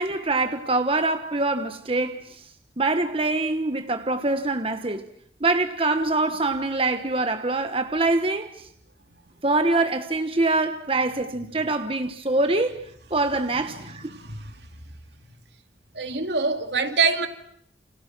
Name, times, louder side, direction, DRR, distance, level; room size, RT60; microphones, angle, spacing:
voice 1, 0.0-2.2 2.8-5.1 5.4-8.5 9.4-12.8 13.1-14.1, right 2 dB, 30° right, 1.2 m, -24 dB
voice 2, 13.7-14.5 15.9-17.3, right 4 dB, 75° right, 2.6 m, -25 dB
30.0 x 29.0 x 6.1 m
head